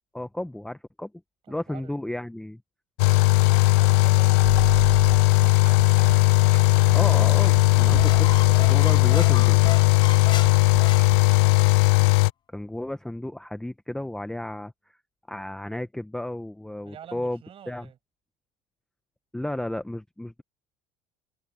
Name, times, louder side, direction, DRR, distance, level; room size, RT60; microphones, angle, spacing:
voice 1, 0.1-1.1 1.5-2.6 6.9-9.6 12.5-15.0 15.3-17.4 17.7-17.9 19.3-20.4, left 1 dB, 5° left, 0.8 m, -33 dB
voice 2, 1.4-2.0 3.5-6.1 11.3-11.6 16.8-18.0, right 10 dB, 40° right, 7.0 m, -47 dB
sound 1, 3.0-12.3, left 23 dB, 85° left, 0.4 m, -18 dB
sound 2, 4.4-11.2, right 40 dB or more, 85° right, 6.3 m, -36 dB
sound 3, 7.7-11.7, left 9 dB, 30° left, 0.5 m, -37 dB
cardioid pair, 125°, 14 cm